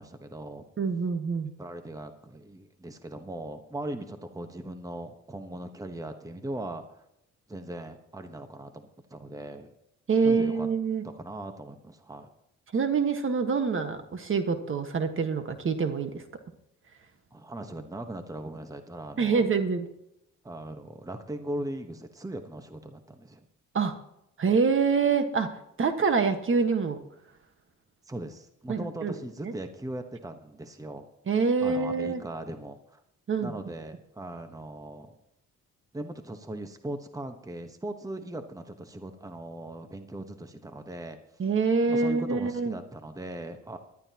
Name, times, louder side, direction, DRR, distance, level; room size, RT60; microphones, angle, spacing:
voice 1, 0.0-0.6 1.6-7.0 7.5-9.7 10.2-10.7 11.0-12.3 17.3-19.4 20.4-23.5 28.0-31.1 31.6-33.0 33.4-35.1 35.9-41.2 41.9-43.8, right 1 dB, 10° right, 7 dB, 1.2 m, -39 dB
voice 2, 0.8-1.5 10.1-11.0 12.7-16.2 19.2-19.9 23.7-23.9 24.4-25.5 25.8-27.0 28.7-29.1 29.4-29.5 31.3-32.2 33.3-33.5 41.4-42.7, right 5 dB, 45° right, 8 dB, 1.5 m, -26 dB
20.0 x 12.0 x 3.0 m, 0.81 s
cardioid pair, 90°, 30 cm